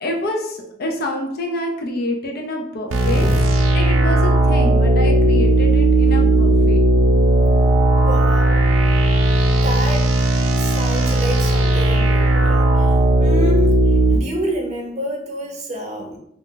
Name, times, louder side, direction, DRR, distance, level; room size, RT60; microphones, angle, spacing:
voice 1, 0.0-3.3 3.7-6.8, left 1 dB, 50° left, 2 dB, 0.5 m, -27 dB
sound 1, 2.9-14.2, right 1 dB, 80° right, 0.5 m, -16 dB
voice 2, 3.0-3.5 8.0-8.6 9.5-10.1 10.6-13.7 14.1-16.2, equal, 35° right, 0 dB, 0.6 m, -28 dB
2.4 x 2.1 x 3.8 m, 0.75 s
head